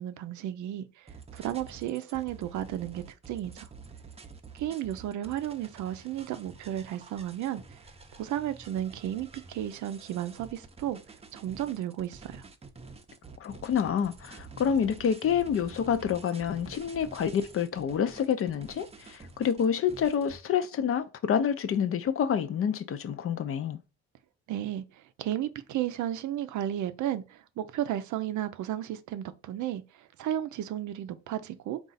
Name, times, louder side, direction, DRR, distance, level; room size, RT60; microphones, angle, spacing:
voice 1, 0.0-3.7 4.5-7.8 8.1-11.0 11.3-12.5 24.5-31.8, right 11 dB, 75° right, 0.5 m, -34 dB
sound 1, 1.1-20.4, right 4 dB, 20° right, 0.6 m, -49 dB
voice 2, 13.4-23.8, left 8 dB, 50° left, 0.5 m, -28 dB
3.8 x 2.4 x 4.0 m
cardioid pair, 90°, 30 cm